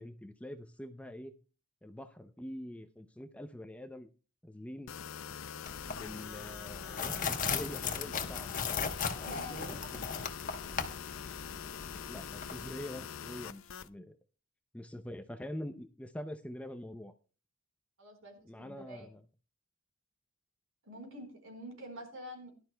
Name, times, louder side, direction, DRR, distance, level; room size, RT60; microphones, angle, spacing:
voice 1, 0.0-1.3 1.8-4.1 4.4-4.9 5.8-8.5 9.2-10.1 12.1-14.2 14.7-17.1 18.4-19.2, left 1 dB, 5° left, 8 dB, 0.5 m, -45 dB
sound 1, 4.9-13.9, left 8 dB, 75° left, 0.5 m, -44 dB
sound 2, 5.7-12.7, left 6 dB, 40° left, 1.0 m, -38 dB
voice 2, 9.2-9.8 18.0-19.1 20.8-22.5, equal, 75° right, 3 dB, 4.3 m, -46 dB
18.0 x 11.5 x 2.2 m, 0.36 s
head